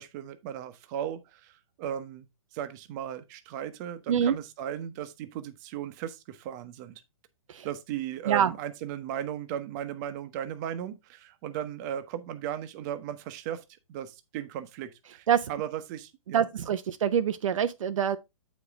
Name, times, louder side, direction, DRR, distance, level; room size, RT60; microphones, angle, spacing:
voice 1, 0.0-7.0 7.6-13.6 13.9-16.7, right 10 dB, 35° right, 0.9 m, -36 dB
voice 2, 16.3-18.2, right 8 dB, 70° right, 0.6 m, -25 dB
8.3 x 5.2 x 3.5 m
hypercardioid pair, 145°, 18 cm